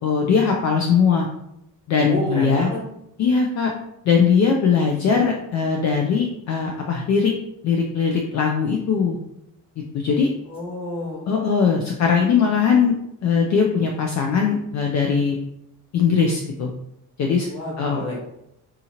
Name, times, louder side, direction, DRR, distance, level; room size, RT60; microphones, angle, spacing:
voice 1, 0.0-1.3 1.9-2.7 3.2-3.7 4.0-7.3 7.6-9.2 9.9-10.3 11.3-12.9 13.2-15.4 15.9-16.7 17.2-17.5 17.8-18.0, left 6 dB, 50° left, 1 dB, 0.4 m, -20 dB
voice 2, 2.0-2.8 10.5-11.3 17.5-18.2, equal, 15° left, -5 dB, 1.3 m, -29 dB
3.7 x 2.8 x 2.8 m, 0.81 s
cardioid pair, 165°, 36 cm